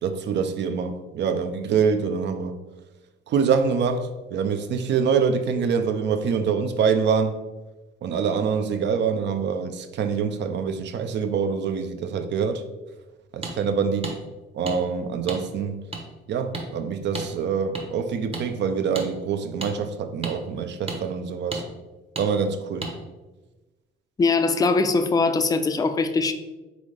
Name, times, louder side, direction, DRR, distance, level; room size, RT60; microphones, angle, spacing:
voice 1, 0.0-2.6 3.3-7.4 8.0-12.6 13.3-14.2 14.5-15.8 16.3-21.6 22.2-22.9, right 6 dB, 65° right, 0.5 m, -25 dB
sound 1, 13.4-13.5 14.0-14.2 14.7-14.8 15.3-15.4 15.9-16.0 16.5-16.7 17.1-17.3 17.7-17.8 18.3-18.5 18.9-19.1 19.6-19.7 20.2-20.4 20.9-21.0 21.5-21.6 22.2-22.3 22.8-22.9, right 3 dB, 30° right, 0.8 m, -31 dB
voice 2, 24.2-26.3, left 3 dB, 20° left, 0.3 m, -21 dB
3.9 x 3.5 x 3.2 m
cardioid pair, 90°, 20 cm